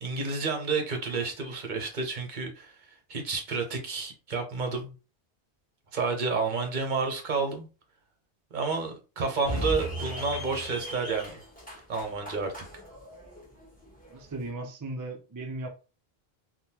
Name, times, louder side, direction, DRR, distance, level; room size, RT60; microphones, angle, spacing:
voice 1, 0.0-2.7 3.1-4.9 5.9-7.7 8.5-11.4 11.9-12.5, right 4 dB, 50° right, 0.8 m, -30 dB
sound 1, 9.4-14.5, equal, 10° left, 1.0 m, -37 dB
voice 2, 14.1-15.7, right 2 dB, 30° right, 0.3 m, -37 dB
3.5 x 2.2 x 2.8 m
omnidirectional pair, 1.1 m